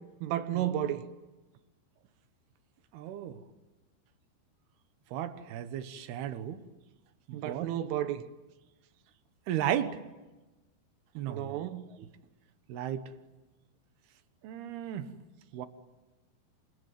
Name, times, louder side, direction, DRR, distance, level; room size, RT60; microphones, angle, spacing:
voice 1, 0.2-1.1 7.3-8.2 11.3-11.9, right 11 dB, 85° right, 3.9 m, -32 dB
voice 2, 2.9-3.4 5.1-6.6 7.3-7.7 9.5-10.0 11.2-11.6 12.7-13.1 14.4-15.1 15.5-15.7, right 10 dB, 65° right, 2.8 m, -34 dB
28.0 x 22.5 x 9.4 m
omnidirectional pair, 5.5 m